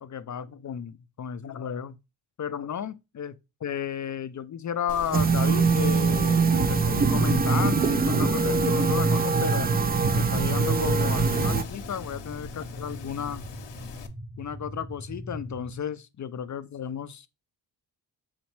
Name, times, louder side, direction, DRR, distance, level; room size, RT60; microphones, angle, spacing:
voice 1, 0.0-2.0 2.4-9.7 10.1-13.5 14.4-17.3, left 8 dB, 40° left, 0.4 m, -33 dB
Wind, 4.9-14.1, left 6 dB, 65° left, 0.8 m, -41 dB
sound 1, 5.1-11.6, right 4 dB, 25° right, 0.3 m, -23 dB
sound 2, 9.2-15.8, equal, 60° right, 2.4 m, -42 dB
4.2 x 4.0 x 3.1 m
cardioid pair, 50°, 45 cm